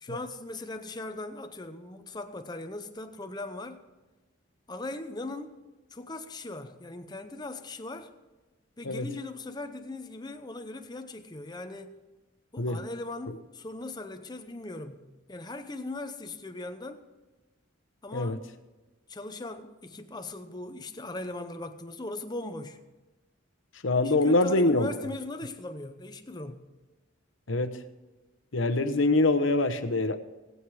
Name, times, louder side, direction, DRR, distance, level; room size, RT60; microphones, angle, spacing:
voice 1, 0.0-3.8 4.7-5.6 5.9-8.1 8.8-12.0 12.5-15.0 15.3-17.0 18.0-18.4 19.1-22.8 24.0-26.6, left 2 dB, 20° left, 0.8 m, -39 dB
voice 2, 23.8-24.9 27.5-27.8 28.5-30.2, left 2 dB, 75° left, 0.9 m, -24 dB
19.5 x 7.9 x 4.8 m
head